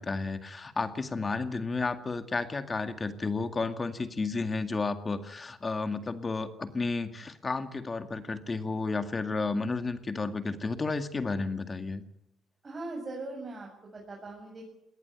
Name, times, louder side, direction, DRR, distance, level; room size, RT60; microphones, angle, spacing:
voice 1, 0.0-12.0, left 3 dB, 30° left, 9 dB, 2.1 m, -32 dB
voice 2, 12.6-14.7, right 2 dB, 30° right, -1 dB, 7.4 m, -40 dB
20.5 x 18.5 x 9.4 m, 0.85 s
cardioid pair, 90°, 0 cm